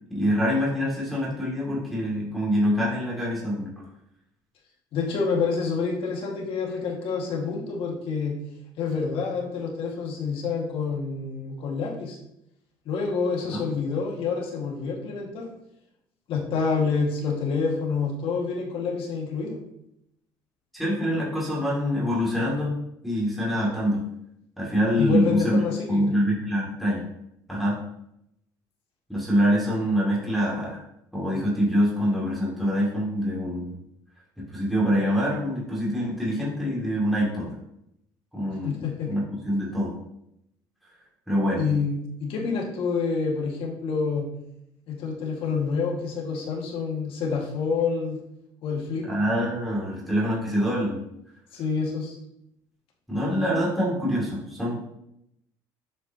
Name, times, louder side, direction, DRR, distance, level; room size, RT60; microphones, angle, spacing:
voice 1, 0.1-3.7 13.5-13.6 20.7-22.8 23.0-24.0 24.6-25.6 25.9-27.1 27.5-27.8 29.1-30.8 31.1-33.8 34.4-37.6 38.3-39.9 41.3-41.6 49.1-51.0 53.1-54.9, equal, ahead, -6 dB, 2.5 m, -25 dB
voice 2, 4.9-8.4 8.8-12.2 12.8-15.5 16.3-19.6 25.0-26.1 38.6-39.1 41.6-44.3 44.9-48.2 48.6-49.1 51.5-52.2, left 5 dB, 65° left, -1 dB, 1.9 m, -27 dB
7.8 x 5.2 x 2.9 m, 0.79 s
supercardioid pair, 85°, 10 cm